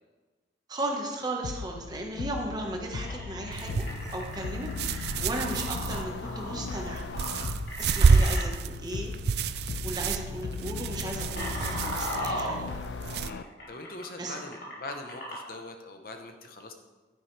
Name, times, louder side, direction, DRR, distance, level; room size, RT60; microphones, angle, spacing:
voice 1, 0.7-3.8 4.1-7.0 7.8-12.7 14.2-14.4, right 1 dB, 25° right, 1 dB, 1.4 m, -36 dB
sound 1, 1.4-13.4, left 5 dB, 90° left, 0.4 m, -38 dB
sound 2, 3.0-8.5 9.5-9.7 10.0-10.2 10.8-15.6, equal, 70° left, 3.3 m, -38 dB
sound 3, 3.5-13.3, right 5 dB, 65° right, 0.4 m, -29 dB
voice 2, 13.2-16.7, left 2 dB, 55° left, 5 dB, 1.0 m, -42 dB
11.0 x 10.0 x 3.4 m, 1.2 s
head